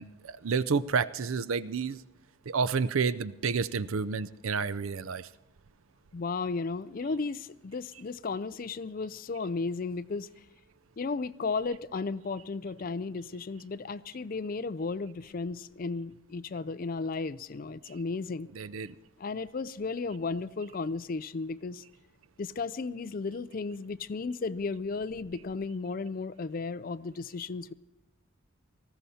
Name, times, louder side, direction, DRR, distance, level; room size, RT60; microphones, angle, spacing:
voice 1, 0.0-2.0 2.5-5.3 18.5-18.9, right 5 dB, 80° right, 0.5 m, -30 dB
voice 2, 6.1-10.3 11.0-18.5 19.2-21.8 22.4-27.7, left 4 dB, 40° left, 0.4 m, -34 dB
19.0 x 14.5 x 4.3 m
head